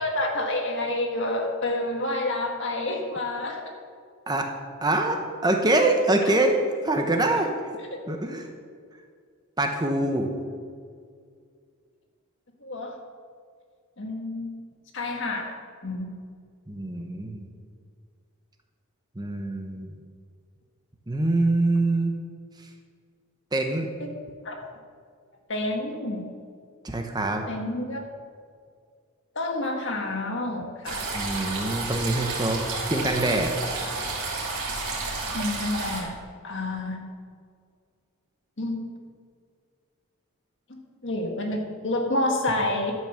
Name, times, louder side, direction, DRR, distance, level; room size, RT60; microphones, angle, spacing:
voice 1, 0.0-3.7 6.2-6.3 7.9-8.0 12.6-13.0 14.0-14.6 14.9-15.5 15.8-16.1 24.0-24.1 24.4-24.6 25.5-26.2 27.5-28.0 29.3-31.1 35.3-36.2 36.4-37.0 38.6-38.9 40.7-42.9, left 2 dB, 55° left, 2 dB, 1.7 m, -29 dB
voice 2, 4.8-6.6 6.8-7.5 8.1-8.5 9.6-10.3 16.7-17.5 19.2-19.9 21.1-22.1 23.5-23.9 26.8-27.4 31.1-32.6 32.9-33.5, right 2 dB, 20° right, 4 dB, 0.9 m, -24 dB
sound 1, 30.8-36.0, right 3 dB, 70° right, 3.5 m, -31 dB
12.5 x 6.0 x 6.9 m, 2.1 s
head